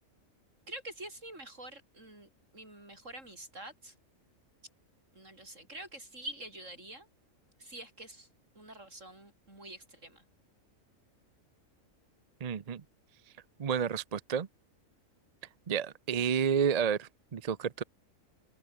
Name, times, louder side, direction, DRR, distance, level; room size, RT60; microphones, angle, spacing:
voice 1, 0.7-3.9 5.1-7.1 7.6-8.3 8.5-10.2, right 1 dB, 65° right, 8.0 m, -46 dB
voice 2, 12.4-12.8 13.6-14.5 15.7-17.8, right 7 dB, 40° right, 0.6 m, -30 dB
omnidirectional pair, 1.4 m